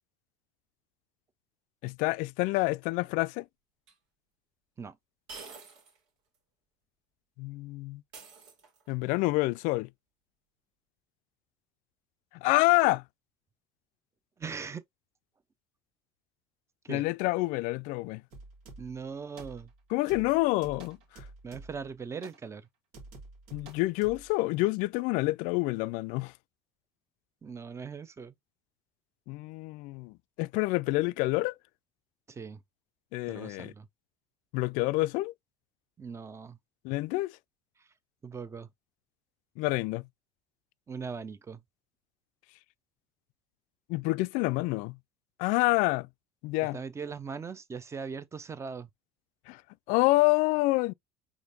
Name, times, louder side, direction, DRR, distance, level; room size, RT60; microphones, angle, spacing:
voice 1, 1.8-3.5 7.4-8.0 8.9-9.9 12.4-13.0 16.9-18.2 19.9-21.2 23.5-26.3 29.3-31.5 33.1-33.7 34.5-35.3 36.8-37.4 39.6-40.0 43.9-45.0 45.4-46.1 46.4-46.8 49.5-49.6 49.9-50.9, left 21 dB, 65° left, 0.4 m, -27 dB
sound 1, 3.9-4.0 5.3-6.0 6.3-6.4 8.1-9.0, right 4 dB, 85° right, 2.5 m, -48 dB
voice 2, 14.4-14.8 16.8-17.0 18.8-19.7 21.4-22.7 27.4-28.3 32.3-32.6 33.3-33.9 36.0-36.6 38.2-38.7 40.9-41.6 46.7-48.9, right 5 dB, 20° right, 0.7 m, -40 dB
sound 2, 18.3-19.0 19.4-19.8 20.1-21.9 22.2-22.5 22.9-24.3, right 2 dB, 70° right, 1.9 m, -49 dB
5.0 x 3.6 x 2.6 m
supercardioid pair, 105°, 14 cm